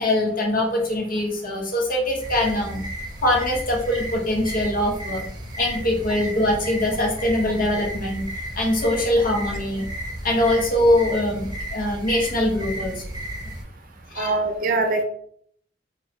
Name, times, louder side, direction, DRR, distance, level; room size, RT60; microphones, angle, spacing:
voice 1, 0.0-2.9 3.2-5.2 5.6-8.3 8.5-9.9 10.2-13.0 14.1-14.4, left 1 dB, 50° left, -1 dB, 1.2 m, -22 dB
sound 1, 2.2-13.6, equal, 25° right, 1.0 m, -33 dB
voice 2, 14.2-15.0, right 3 dB, 50° right, 5 dB, 0.6 m, -22 dB
4.5 x 2.7 x 3.3 m, 0.63 s
head